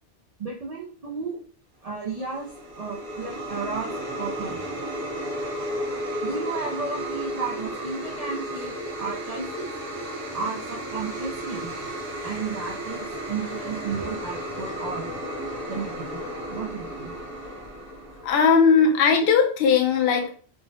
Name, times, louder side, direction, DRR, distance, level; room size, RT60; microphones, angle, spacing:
voice 1, 0.4-1.4 1.8-4.8 6.2-9.7 10.3-11.7 12.2-15.1 15.7-16.2 16.5-17.1, right 4 dB, 80° right, -2 dB, 0.3 m, -33 dB
sound 1, 2.0-18.5, right 1 dB, 55° right, 0.9 m, -33 dB
voice 2, 18.2-20.3, left 6 dB, 65° left, 3 dB, 0.7 m, -19 dB
3.3 x 2.0 x 2.6 m, 0.43 s
omnidirectional pair, 1.2 m